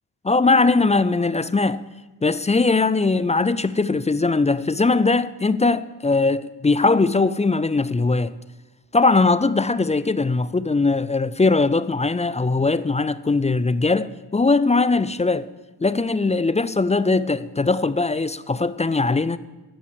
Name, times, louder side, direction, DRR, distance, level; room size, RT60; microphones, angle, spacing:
voice 1, 0.2-1.8 2.2-8.3 8.9-15.5 15.8-19.4, left 3 dB, 15° left, 0.3 m, -20 dB
13.0 x 5.5 x 8.5 m
cardioid pair, 60°, 43 cm